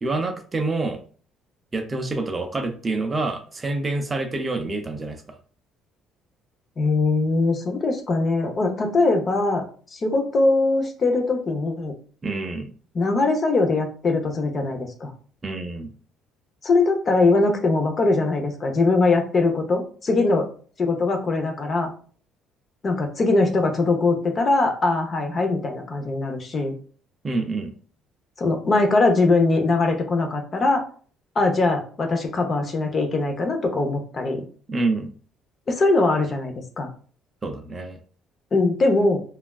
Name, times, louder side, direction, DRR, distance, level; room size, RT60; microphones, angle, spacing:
voice 1, 0.0-1.0 1.7-5.2 12.2-12.7 15.4-15.9 27.2-27.7 34.7-35.1 37.4-38.0, right 3 dB, 25° right, 5 dB, 0.4 m, -27 dB
voice 2, 6.8-11.9 12.9-15.1 16.6-20.5 20.8-21.9 22.8-26.7 28.4-30.8 31.4-34.4 35.7-36.9 38.5-39.2, left 3 dB, 35° left, 4 dB, 0.6 m, -21 dB
3.2 x 2.3 x 2.3 m, 0.42 s
cardioid pair, 110°, 0 cm